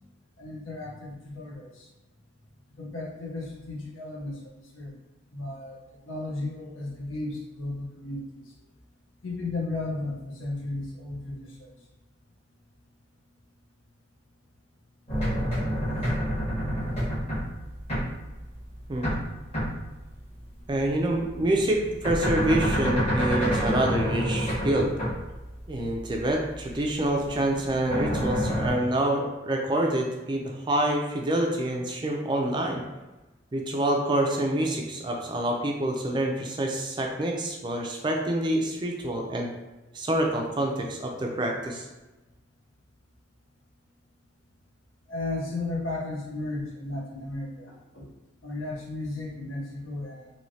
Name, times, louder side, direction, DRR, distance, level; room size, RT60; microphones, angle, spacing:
voice 1, 0.4-1.9 2.7-4.4 4.7-4.9 5.3-5.8 6.0-8.4 9.2-11.7 45.1-48.1 48.4-50.3, left 2 dB, 85° left, -2 dB, 0.8 m, -34 dB
sound 1, 15.1-19.2 19.5-20.0 20.8-26.8 27.2-28.7, equal, 30° left, 1.3 m, -28 dB
voice 2, 20.7-24.9 25.7-32.8 33.5-39.5 39.9-41.9, right 1 dB, 25° right, 1 dB, 0.3 m, -27 dB
3.1 x 2.7 x 2.7 m, 1.1 s
head